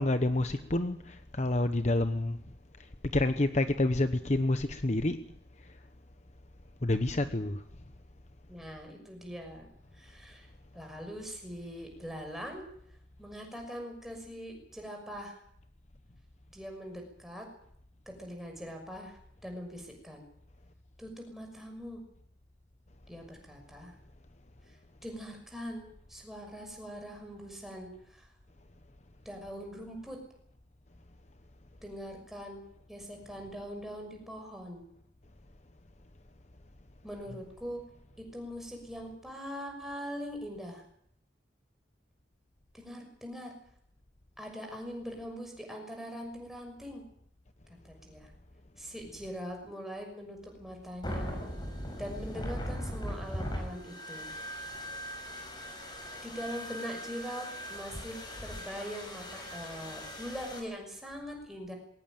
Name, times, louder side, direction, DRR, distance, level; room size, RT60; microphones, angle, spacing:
voice 1, 0.0-2.4 2.8-5.2 5.6-5.8 6.8-7.6, left 2 dB, 40° left, 1.0 m, -29 dB
voice 2, 8.5-9.7 9.9-10.5 10.7-12.6 13.2-15.4 16.5-17.5 18.1-20.2 21.0-22.0 23.1-23.9 25.0-28.3 29.2-30.2 31.8-32.6 32.9-34.8 37.0-37.8 38.2-40.8 42.7-43.6 44.4-47.0 47.8-48.3 48.8-51.4 52.0-54.3 56.2-61.7, equal, ahead, 6.2 m, -42 dB
sound 1, 51.0-60.6, equal, 25° left, 5.9 m, -39 dB
22.0 x 18.0 x 9.2 m
head